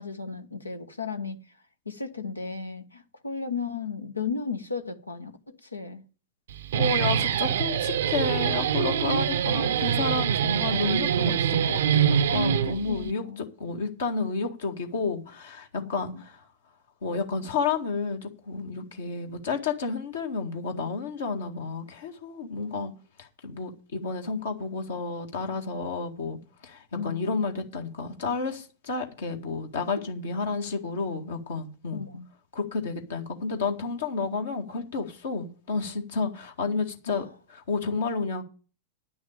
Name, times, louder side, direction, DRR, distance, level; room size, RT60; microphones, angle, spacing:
voice 1, 0.0-1.4 1.8-6.0 12.9-13.5 15.8-16.2 26.9-27.2 31.9-32.3 37.1-37.3, left 5 dB, 80° left, 1.1 m, -35 dB
Guitar, 6.5-13.1, right 8 dB, 60° right, 0.6 m, -25 dB
voice 2, 6.8-13.2 13.6-16.4 17.0-22.9 23.2-26.4 26.6-32.0 32.5-37.2 37.5-38.4, left 4 dB, 65° left, 1.9 m, -31 dB
10.0 x 6.3 x 8.9 m
figure-of-eight pair, 90°, 0 cm